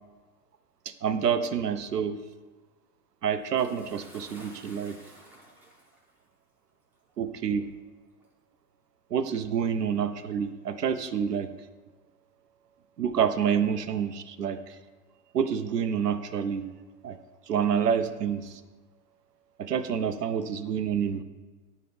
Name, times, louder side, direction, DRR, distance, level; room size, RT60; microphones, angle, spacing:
voice 1, 1.0-2.2 3.2-5.0 7.2-7.7 9.1-11.5 13.0-14.8 15.3-16.7 17.0-17.2 17.5-18.6 19.6-21.2, right 7 dB, 85° right, 10 dB, 0.6 m, -28 dB
Bathtub (filling or washing) / Splash splatter, 3.6-6.2 7.1-7.2 8.2-8.3, equal, 5° right, 0.4 m, -52 dB
9.7 x 4.5 x 3.4 m, 1.3 s
figure-of-eight pair, 110°, 47 cm